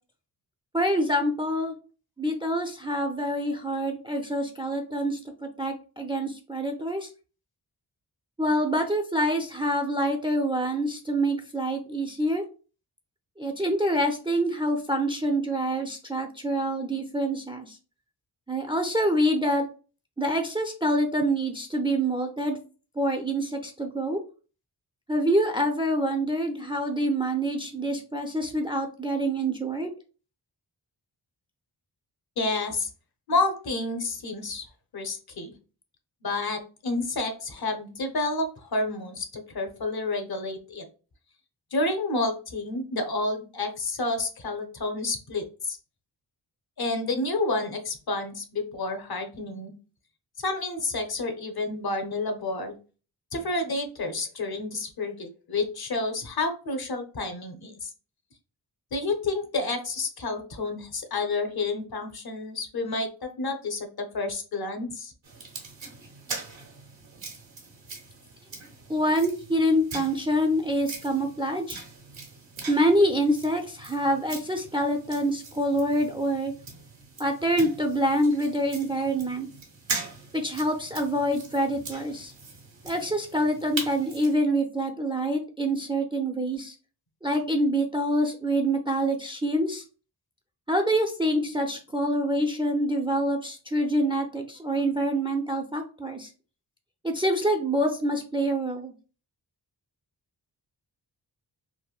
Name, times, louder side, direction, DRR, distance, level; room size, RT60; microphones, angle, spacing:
voice 1, 0.7-1.7 2.2-7.1 8.4-12.4 13.4-17.8 18.5-19.6 20.2-22.6 23.0-24.2 25.1-29.9 68.9-71.8 72.7-76.5 77.2-79.5 80.3-82.3 82.8-86.7 87.2-89.8 90.7-96.3 97.0-98.9, right 1 dB, 10° right, 4 dB, 0.4 m, -26 dB
voice 2, 32.4-32.9 33.3-34.7 34.9-35.5 36.2-40.8 41.7-45.8 46.8-49.7 50.4-52.7 53.3-57.9 58.9-65.1, left 2 dB, 55° left, 6 dB, 0.8 m, -30 dB
sound 1, 65.2-84.4, right 4 dB, 85° right, 1.0 m, -41 dB
3.4 x 2.1 x 2.4 m, 0.36 s
cardioid pair, 60°, 45 cm